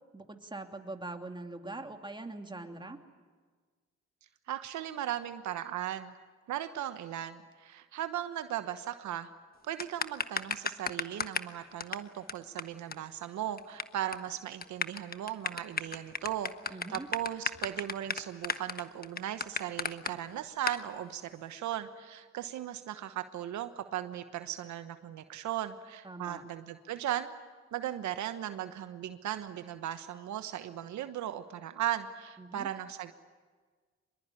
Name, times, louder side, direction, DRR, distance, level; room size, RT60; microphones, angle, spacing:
voice 1, 0.1-3.0 16.7-17.1 26.0-26.4 32.4-32.7, right 2 dB, 15° right, 4 dB, 2.8 m, -42 dB
voice 2, 4.5-6.1 6.5-9.3 9.7-27.3 27.7-33.1, right 11 dB, 80° right, 10 dB, 1.2 m, -37 dB
sound 1, 9.8-11.5 11.8-11.9 12.3-12.4 12.6-12.7 12.9-13.0 13.2-13.8 14.1-14.3 14.6-20.1 20.7-20.8, left 5 dB, 30° left, 1.3 m, -33 dB
25.0 x 21.5 x 9.9 m, 1.5 s
supercardioid pair, 65°, 29 cm